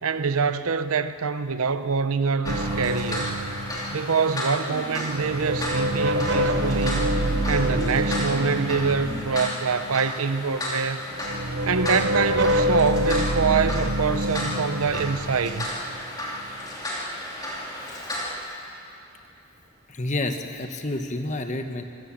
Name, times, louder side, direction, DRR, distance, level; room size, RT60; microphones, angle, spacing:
voice 1, 0.0-3.4 3.9-7.1 7.5-11.0 11.6-15.7, right 5 dB, 75° right, 0.8 m, -25 dB
sound 1, 2.4-18.4, left 1 dB, 15° left, 2.9 m, -33 dB
sound 2, 2.5-4.7 5.0-10.2 11.1-16.6, equal, 50° right, 0.9 m, -27 dB
voice 2, 19.9-21.8, left 2 dB, 35° left, 1.1 m, -29 dB
25.5 x 14.5 x 7.4 m
head